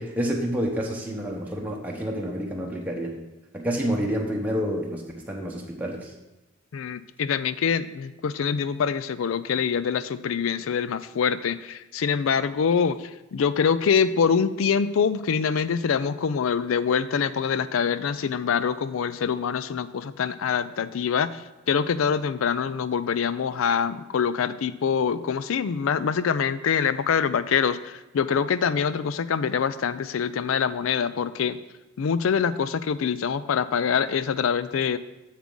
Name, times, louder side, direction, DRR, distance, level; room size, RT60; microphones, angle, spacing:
voice 1, 0.0-3.1 3.5-6.1, equal, 10° right, -2 dB, 0.8 m, -28 dB
voice 2, 6.7-31.6 32.0-35.0, left 6 dB, 75° left, 15 dB, 0.4 m, -25 dB
7.3 x 7.2 x 3.8 m, 1.0 s
head